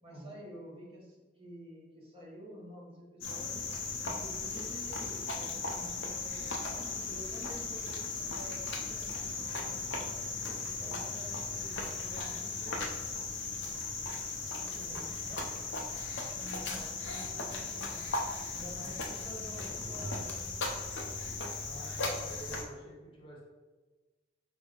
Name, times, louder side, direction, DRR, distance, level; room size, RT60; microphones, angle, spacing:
voice 1, 0.0-3.6 4.0-10.2 10.8-13.1 16.6-18.1 18.5-20.5, equal, 30° right, -4 dB, 1.0 m, -50 dB
Cricket, 3.2-22.6, left 3 dB, 80° left, 0.6 m, -37 dB
voice 2, 14.6-15.5 18.8-19.1 21.6-23.4, right 1 dB, 30° left, -4 dB, 0.8 m, -49 dB
sound 1, 14.6-20.4, right 1 dB, 10° left, 0.4 m, -50 dB
5.2 x 2.1 x 3.6 m, 1.3 s
head